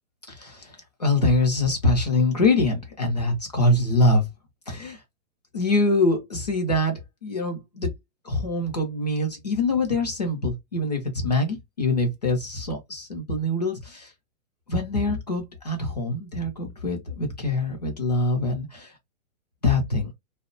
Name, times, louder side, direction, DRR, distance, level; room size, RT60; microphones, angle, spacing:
voice 1, 0.3-4.3 4.7-5.0 5.5-7.9 8.2-14.1 14.7-18.9 19.6-20.1, left 2 dB, 35° left, 0.4 m, -24 dB
2.6 x 2.0 x 2.4 m
hypercardioid pair, 175°, 40 cm